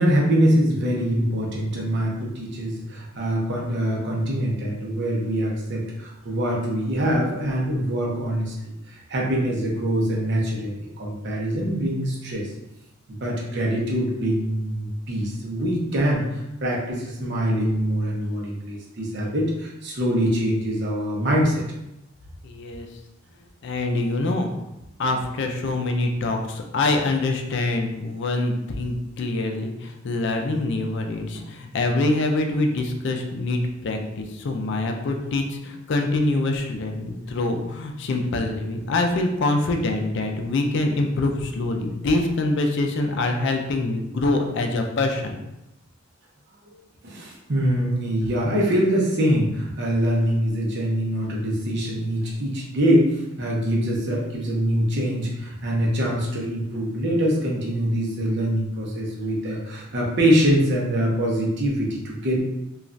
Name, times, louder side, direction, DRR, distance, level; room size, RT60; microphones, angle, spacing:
voice 1, 0.0-8.5 8.9-12.5 13.1-21.6 46.7-62.4, equal, 55° right, -3 dB, 0.7 m, -24 dB
voice 2, 22.4-22.9 23.6-24.5 25.0-45.3, left 2 dB, 60° left, 3 dB, 0.4 m, -25 dB
3.1 x 2.3 x 2.5 m, 0.90 s
head